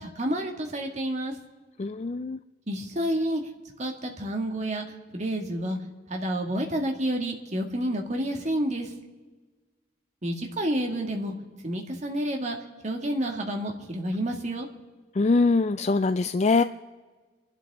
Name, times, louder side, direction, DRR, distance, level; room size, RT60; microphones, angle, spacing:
voice 1, 0.0-1.3 2.7-3.4 3.8-4.8 5.1-5.8 6.1-8.9 10.2-11.3 11.6-12.6 12.8-14.7, right 1 dB, 40° right, 2 dB, 2.1 m, -29 dB
voice 2, 1.8-2.4 15.2-16.6, left 3 dB, 40° left, 10 dB, 0.4 m, -23 dB
29.5 x 12.0 x 3.7 m, 1.3 s
head